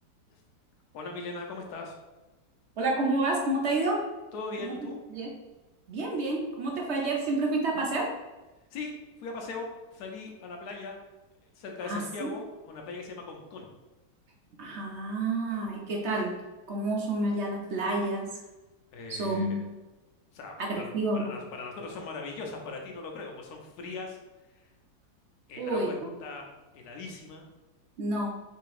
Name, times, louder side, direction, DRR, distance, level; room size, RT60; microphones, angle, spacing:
voice 1, 0.9-2.0 4.3-5.0 8.7-8.9 9.2-11.0 11.6-13.7 18.9-19.6 20.3-24.2 24.5-24.6 25.5-26.0 26.2-26.5 26.7-27.5, left 3 dB, 65° left, 1 dB, 1.2 m, -39 dB
voice 2, 2.8-4.0 4.6-4.7 5.1-5.3 5.9-8.1 11.8-12.4 14.6-16.4 16.7-18.3 19.1-19.6 20.6-21.3 25.6-26.1 28.0-28.3, right 2 dB, 60° right, -1 dB, 0.7 m, -29 dB
3.4 x 2.9 x 4.7 m, 1.1 s
omnidirectional pair, 1.9 m